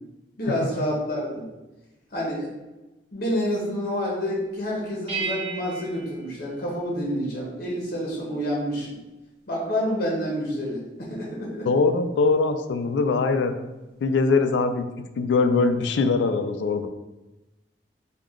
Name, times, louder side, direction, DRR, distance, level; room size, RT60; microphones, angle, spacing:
voice 1, 0.4-1.5 2.1-2.5 3.1-9.0 9.5-11.7, equal, 55° left, -3 dB, 0.9 m, -28 dB
sound 1, 5.1-7.3, right 5 dB, 35° right, 1.1 m, -35 dB
voice 2, 11.6-13.6 14.0-14.9 15.2-16.9, left 4 dB, 80° left, 8 dB, 0.3 m, -22 dB
3.6 x 2.3 x 3.5 m, 1.0 s
head